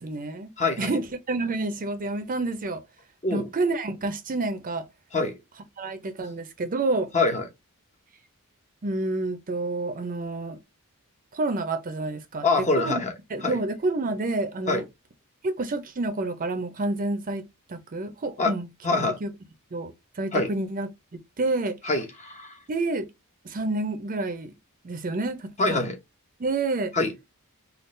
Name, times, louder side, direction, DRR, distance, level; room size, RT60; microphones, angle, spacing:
voice 1, 0.0-2.8 3.3-4.8 5.8-7.1 8.8-10.6 11.3-13.0 13.3-14.8 15.4-17.4 17.7-18.7 19.2-19.3 19.7-20.9 21.4-21.8 22.7-23.1 23.4-24.5 24.8-25.8 26.4-26.9, right 2 dB, 40° right, 0.6 m, -29 dB
voice 2, 0.6-0.9 3.2-3.5 5.1-5.3 7.1-7.4 12.4-13.1 13.4-13.6 14.7-14.8 18.4-18.5 18.8-19.2 20.3-20.5 21.8-22.5 25.6-26.0 26.9-27.1, left 3 dB, 30° left, 0.8 m, -24 dB
3.7 x 2.4 x 2.5 m
head